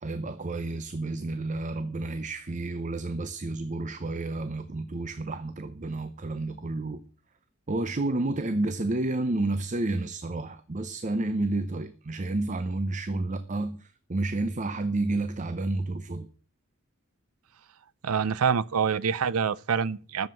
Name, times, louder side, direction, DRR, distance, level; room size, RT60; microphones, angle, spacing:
voice 1, 0.0-7.0 7.7-16.3, right 2 dB, 35° right, 0.6 m, -30 dB
voice 2, 18.0-20.3, right 6 dB, 85° right, 0.6 m, -26 dB
10.5 x 7.3 x 7.7 m
head